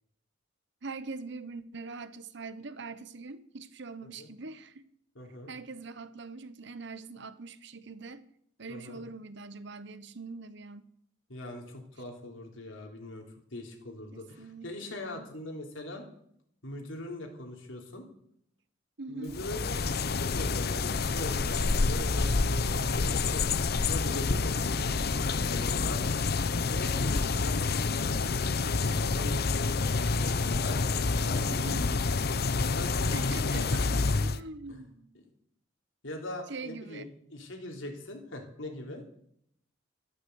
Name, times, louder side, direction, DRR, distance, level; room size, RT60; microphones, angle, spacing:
voice 1, 0.8-4.9 5.5-8.2 8.6-10.9 14.1-15.2 19.0-19.4 31.5-31.8 33.1-35.2 36.5-37.1, right 3 dB, 65° right, 1.1 m, -43 dB
voice 2, 5.2-5.5 8.7-9.0 11.3-13.2 13.5-16.1 16.6-18.0 19.1-26.0 26.7-30.8 31.1-31.9 32.6-33.8 34.7-34.8 36.0-37.0 37.3-39.0, left 1 dB, 80° left, 3.5 m, -41 dB
sound 1, 19.3-34.4, left 4 dB, 55° left, 0.7 m, -28 dB
14.0 x 12.0 x 8.1 m
head